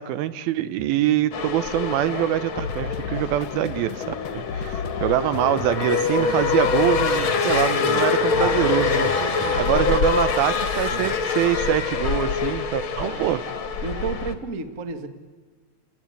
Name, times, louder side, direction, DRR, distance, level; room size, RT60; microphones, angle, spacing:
voice 1, 0.0-9.1 9.6-13.4, right 12 dB, 80° right, 13 dB, 2.7 m, -24 dB
sound 1, 1.3-14.3, left 5 dB, 45° left, 1.9 m, -25 dB
sound 2, 2.6-9.9, left 6 dB, 75° left, 1.4 m, -34 dB
Male speech man speaking, 5.7-6.6 7.4-8.2 8.8-9.8 10.5-11.3, right 8 dB, 65° right, 2.7 m, -38 dB
voice 2, 8.3-8.6 9.9-10.0 13.0-13.4 13.8-15.1, right 5 dB, 45° right, 7 dB, 1.0 m, -31 dB
29.0 x 18.0 x 9.9 m, 1.5 s
omnidirectional pair, 4.3 m